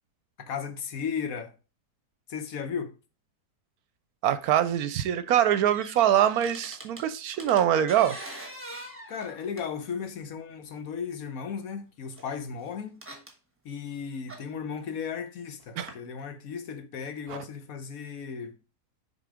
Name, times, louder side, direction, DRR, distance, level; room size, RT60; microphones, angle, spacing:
voice 1, 0.4-1.5 2.3-2.9 9.1-13.0 13.6-18.6, left 6 dB, 65° left, 1.2 m, -35 dB
voice 2, 4.2-8.2 15.8-15.9, right 10 dB, 70° right, 1.0 m, -23 dB
sound 1, 5.3-7.1 7.3-9.9 10.8-10.9 12.2-12.3 12.6-13.3 14.3-14.4 15.9-16.0, right 1 dB, 10° right, 1.1 m, -43 dB
6.7 x 4.0 x 4.9 m
omnidirectional pair, 1.7 m